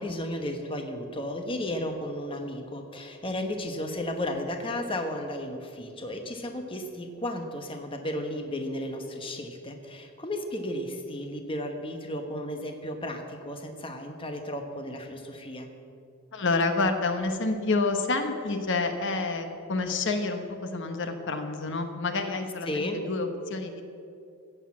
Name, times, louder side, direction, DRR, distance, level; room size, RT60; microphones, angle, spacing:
voice 1, 0.0-15.7 22.7-23.0, left 1 dB, 25° left, 5 dB, 1.0 m, -34 dB
voice 2, 16.3-23.8, left 3 dB, 55° left, 7 dB, 1.0 m, -28 dB
15.5 x 8.2 x 7.4 m, 2.5 s
head